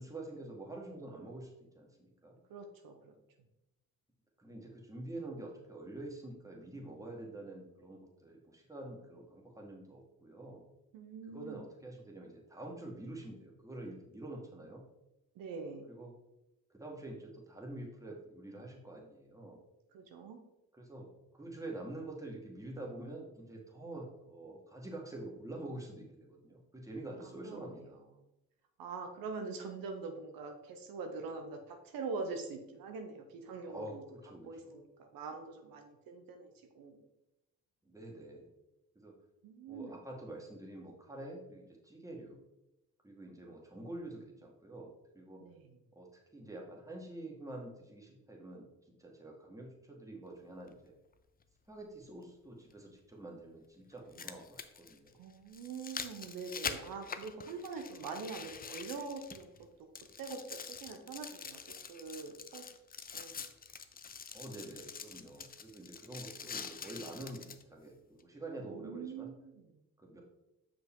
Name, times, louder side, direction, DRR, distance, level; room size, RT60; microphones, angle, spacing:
voice 1, 0.0-2.4 4.4-10.6 11.3-14.8 15.9-16.1 16.7-19.6 20.8-21.1 21.3-28.0 33.6-34.0 34.2-34.8 37.9-38.5 39.0-39.1 39.7-42.4 43.0-45.4 45.9-48.7 49.0-50.9 51.7-55.2 64.3-69.3 70.0-70.2, right 2 dB, 10° right, -1 dB, 1.9 m, -47 dB
voice 2, 2.5-3.1 10.9-11.6 15.3-16.0 19.9-20.4 27.2-27.6 28.8-34.0 34.4-37.0 39.4-39.9 45.4-45.8 55.2-59.7 60.2-62.6 63.1-63.4 68.6-69.8, right 4 dB, 75° right, 4 dB, 0.9 m, -44 dB
sound 1, 50.7-50.8 52.7-52.8 53.9-59.6 59.9-67.6 68.2-68.3, left 6 dB, 25° left, 0.5 m, -45 dB
5.8 x 5.0 x 3.7 m, 0.91 s
supercardioid pair, 70°, 35 cm